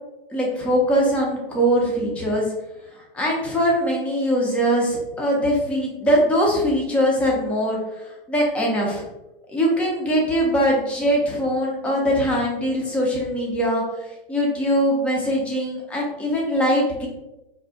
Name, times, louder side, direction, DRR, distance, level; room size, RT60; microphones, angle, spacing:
voice 1, 0.3-2.4 3.1-7.8 8.3-9.0 9.5-13.8 14.3-17.1, equal, 5° left, -3 dB, 0.3 m, -21 dB
2.5 x 2.0 x 3.3 m, 0.98 s
hypercardioid pair, 115°, 29 cm